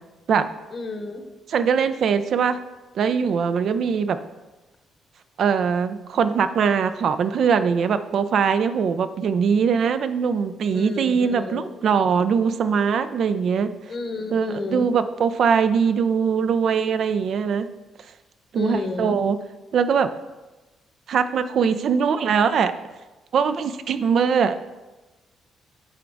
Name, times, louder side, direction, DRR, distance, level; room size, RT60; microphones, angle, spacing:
voice 1, 0.7-1.2 10.7-11.8 13.9-14.9 18.5-19.2, left 3 dB, 50° left, 5 dB, 1.0 m, -31 dB
voice 2, 1.5-2.6 3.0-4.2 5.4-13.7 14.3-17.7 18.5-19.4 19.7-20.1 21.1-22.7 23.3-24.6, right 6 dB, 65° right, 11 dB, 0.4 m, -21 dB
9.2 x 3.9 x 3.5 m, 1.1 s
supercardioid pair, 60°, 0 cm